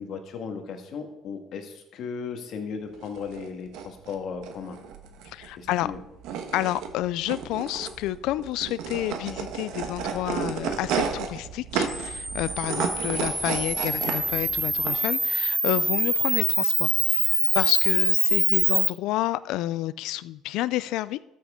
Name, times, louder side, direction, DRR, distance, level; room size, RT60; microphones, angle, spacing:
voice 1, 0.0-4.8 5.6-6.0 12.7-12.8, left 6 dB, 60° left, 5 dB, 1.6 m, -36 dB
sound 1, 2.9-14.9, right 7 dB, 80° right, 1.2 m, -33 dB
voice 2, 5.3-5.9 6.5-21.2, left 15 dB, 75° left, 18 dB, 0.4 m, -29 dB
Camera, 11.9-18.9, right 1 dB, 10° right, 0.9 m, -25 dB
13.0 x 7.6 x 3.7 m, 0.94 s
cardioid pair, 105°, 0 cm